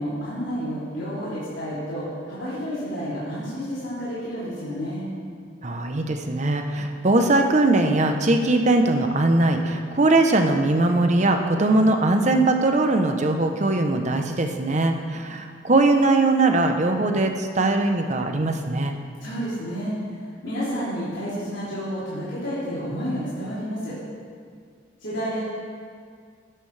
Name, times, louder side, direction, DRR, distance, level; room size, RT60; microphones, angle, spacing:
voice 1, 0.0-5.1 19.2-23.9 25.0-25.4, equal, 85° left, -11 dB, 3.1 m, -30 dB
voice 2, 5.6-18.9, right 2 dB, 40° right, 5 dB, 0.8 m, -20 dB
13.0 x 10.0 x 3.3 m, 2.1 s
head